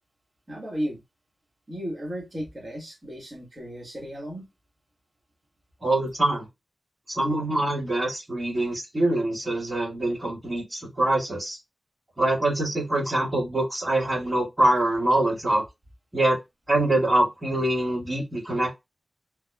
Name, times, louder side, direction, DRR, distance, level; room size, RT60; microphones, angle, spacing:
voice 1, 0.5-1.0 1.7-4.5, equal, 45° right, 1.5 m, -34 dB
voice 2, 5.8-6.5 7.1-11.6 12.2-15.6 16.1-16.4 16.7-18.7, right 1 dB, 30° right, 2.0 m, -24 dB
3.4 x 2.1 x 2.2 m
cardioid pair, 40°, 0 cm